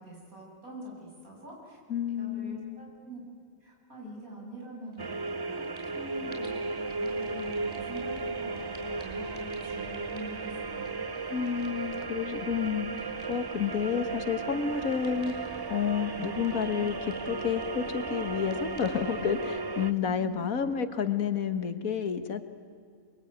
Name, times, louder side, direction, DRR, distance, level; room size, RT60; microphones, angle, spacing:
voice 1, 0.0-1.8 2.2-3.2 3.6-11.1 11.4-11.6 20.0-20.4, equal, 70° right, -2 dB, 8.5 m, -45 dB
voice 2, 1.9-2.8 11.3-15.3 15.7-22.4, left 7 dB, 70° left, 10 dB, 1.8 m, -30 dB
sound 1, 4.9-5.3 5.6-20.6, equal, 5° left, 5.6 m, -53 dB
sound 2, 5.0-19.9, right 4 dB, 30° right, 0.4 m, -35 dB
28.5 x 22.5 x 9.4 m, 2.2 s
omnidirectional pair, 1.5 m